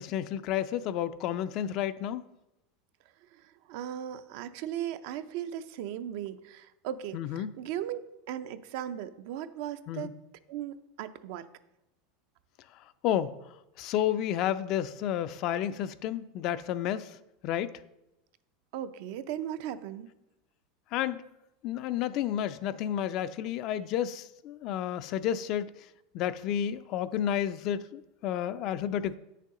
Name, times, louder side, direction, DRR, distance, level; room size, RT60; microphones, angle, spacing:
voice 1, 0.0-2.2 7.1-7.5 9.9-10.1 13.0-13.3 13.8-17.2 17.4-17.7 20.9-21.2 21.6-25.7 26.1-29.1, left 10 dB, 50° left, 13 dB, 0.4 m, -31 dB
voice 2, 3.2-8.0 8.3-10.2 10.5-11.5 18.7-20.1, right 10 dB, 65° right, 11 dB, 0.4 m, -37 dB
8.3 x 6.6 x 3.7 m, 0.91 s
supercardioid pair, 130°, 0 cm